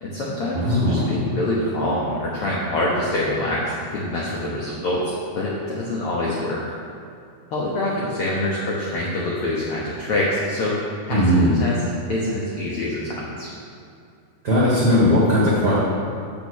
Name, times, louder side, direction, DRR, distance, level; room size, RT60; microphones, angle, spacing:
voice 1, 0.0-5.0 5.3-6.6 7.5-11.8 12.1-13.5, left 1 dB, 75° left, -5 dB, 1.3 m, -25 dB
voice 2, 0.5-1.1 11.1-11.6 14.4-15.8, equal, 65° right, -6 dB, 0.9 m, -18 dB
6.8 x 5.7 x 6.3 m, 2.4 s
omnidirectional pair, 4.0 m